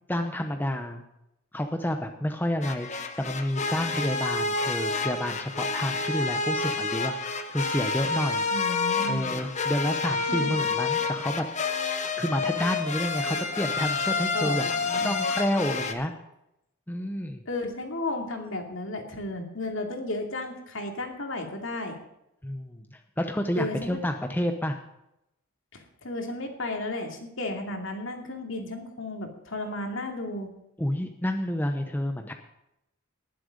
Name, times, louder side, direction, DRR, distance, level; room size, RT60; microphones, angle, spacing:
voice 1, 0.1-1.0 1.5-8.5 9.1-11.5 12.2-14.6 15.0-16.1 16.9-17.4 22.4-24.8 30.8-32.3, left 1 dB, 10° left, 5 dB, 0.7 m, -29 dB
sound 1, 2.6-15.9, left 4 dB, 30° left, 1.0 m, -29 dB
voice 2, 8.5-9.4 10.3-10.6 14.3-15.1 17.5-22.0 23.6-24.0 25.7-30.5, left 2 dB, 60° left, 3 dB, 2.5 m, -34 dB
19.5 x 7.7 x 5.1 m, 0.84 s
head